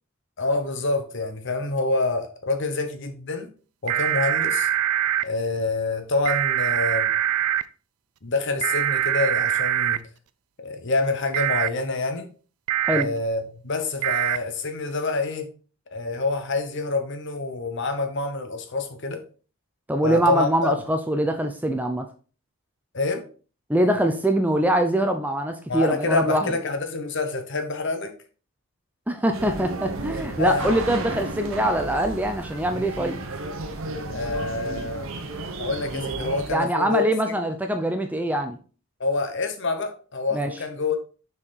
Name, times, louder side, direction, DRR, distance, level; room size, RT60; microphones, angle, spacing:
voice 1, 0.4-3.5 3.8-4.7 5.2-7.1 8.2-10.0 10.6-12.3 12.9-15.5 15.9-19.2 20.0-20.7 22.9-23.2 25.7-28.1 30.4-30.7 34.1-35.1 35.6-37.1 39.0-41.0, left 3 dB, 55° left, 1.0 m, -27 dB
sound 1, 3.9-5.2 6.3-7.6 8.6-10.0 11.3-11.7 12.7-13.0 14.0-14.4, right 11 dB, 85° right, 0.4 m, -23 dB
voice 2, 19.9-22.1 23.7-26.5 29.1-33.2 36.5-38.6 40.3-40.5, right 1 dB, 5° right, 0.5 m, -23 dB
sound 2, 29.3-36.5, right 2 dB, 60° right, 0.9 m, -33 dB
6.2 x 4.5 x 3.9 m
head